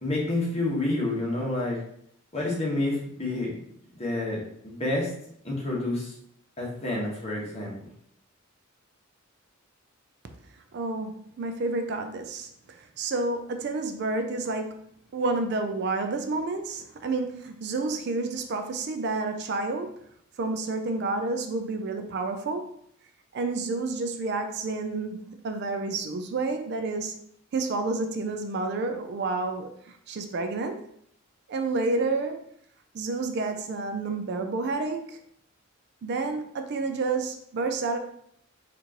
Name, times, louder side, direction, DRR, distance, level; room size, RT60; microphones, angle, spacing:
voice 1, 0.0-1.8 2.3-3.5 4.0-5.1 5.4-6.1 6.6-7.7, left 2 dB, 30° left, -4 dB, 1.1 m, -28 dB
voice 2, 10.7-14.8 15.1-20.0 20.4-22.8 23.3-27.2 27.5-30.8 31.5-32.4 32.9-35.2 36.0-38.0, right 3 dB, 50° right, 6 dB, 0.4 m, -30 dB
4.4 x 2.5 x 2.8 m, 0.69 s
head